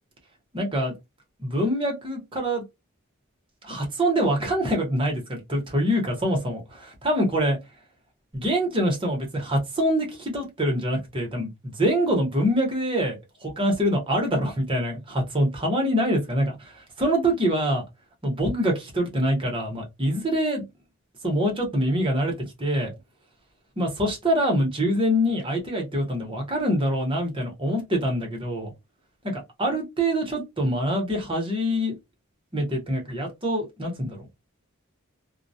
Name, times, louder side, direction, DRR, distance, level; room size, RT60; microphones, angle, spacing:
voice 1, 0.5-0.9 1.4-2.6 3.6-7.6 8.3-17.8 18.2-20.6 21.2-22.3 22.6-22.9 23.8-28.7 29.2-31.9 32.5-34.3, equal, 25° right, 0.9 m, -25 dB
2.2 x 2.1 x 2.7 m
head